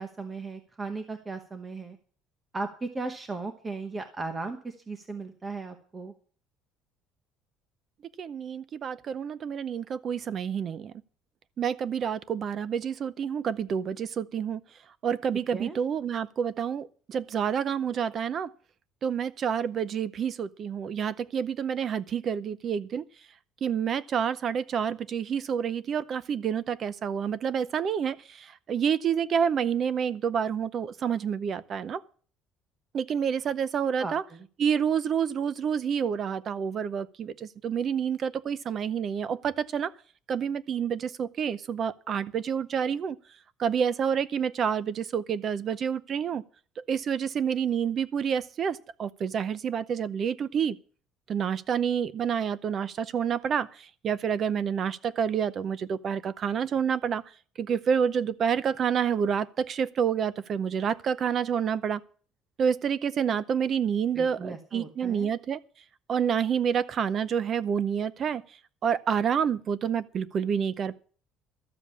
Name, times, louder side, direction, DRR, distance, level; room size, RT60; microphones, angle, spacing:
voice 1, 0.0-2.0 2.5-6.1 15.5-15.8 34.0-34.5 64.1-65.3, right 3 dB, 15° right, 1.0 m, -36 dB
voice 2, 8.2-10.9 11.6-14.6 15.0-18.5 19.0-23.0 23.6-32.0 32.9-34.2 34.6-39.9 40.3-43.2 43.6-46.4 46.8-50.8 51.3-57.2 57.6-62.0 62.6-65.6 66.1-68.4 68.8-71.0, right 7 dB, 30° right, 0.6 m, -28 dB
13.0 x 7.4 x 8.3 m
cardioid pair, 170°, 0 cm